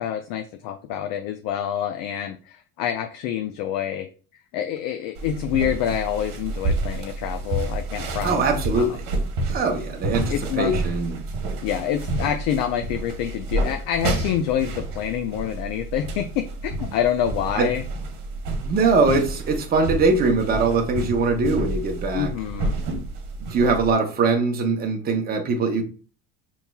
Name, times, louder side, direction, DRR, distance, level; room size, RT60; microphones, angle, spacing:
voice 1, 0.0-4.1 4.5-8.4 8.8-9.0 10.3-10.7 11.6-17.8 18.6-18.7 22.1-22.7, left 10 dB, 70° left, 0.5 m, -27 dB
sound 1, 5.2-23.9, right 2 dB, 65° right, 1.1 m, -29 dB
voice 2, 8.2-9.0 9.5-11.2 17.6-17.7 18.6-22.3 23.5-25.8, right 3 dB, 25° right, 0.7 m, -22 dB
5.4 x 3.1 x 2.2 m
cardioid pair, 150°, 35 cm